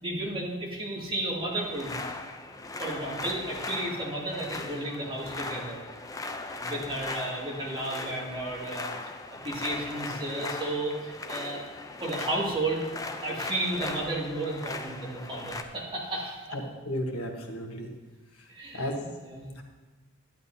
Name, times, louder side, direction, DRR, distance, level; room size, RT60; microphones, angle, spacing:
voice 1, 0.0-2.0 2.8-5.8 6.3-9.2 9.4-11.6 12.0-16.5 18.5-18.9 19.2-19.5, right 1 dB, 25° right, -5 dB, 2.2 m, -33 dB
sound 1, 1.5-15.6, left 3 dB, 15° left, 0.5 m, -38 dB
voice 2, 16.8-17.9 18.4-18.5 18.7-19.1 19.6-19.7, equal, 90° left, 2 dB, 1.4 m, -33 dB
12.0 x 10.5 x 2.8 m, 1.3 s
head